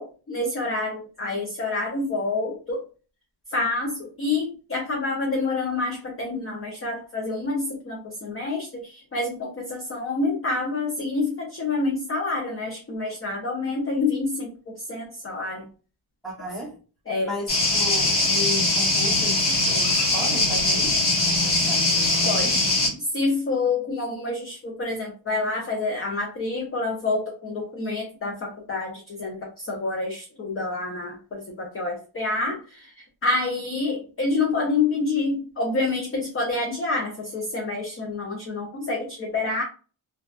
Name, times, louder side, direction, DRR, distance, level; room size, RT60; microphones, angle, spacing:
voice 1, 0.0-2.8 3.5-15.7 17.1-17.3 22.2-22.8 23.1-32.9 33.2-39.6, left 3 dB, 30° left, -1 dB, 0.4 m, -28 dB
voice 2, 16.2-16.8 17.2-23.0, left 1 dB, ahead, -4 dB, 0.8 m, -35 dB
sound 1, 17.5-22.9, left 2 dB, 50° left, 1.2 m, -21 dB
2.3 x 2.3 x 2.3 m, 0.36 s
wide cardioid pair, 170°, 49 cm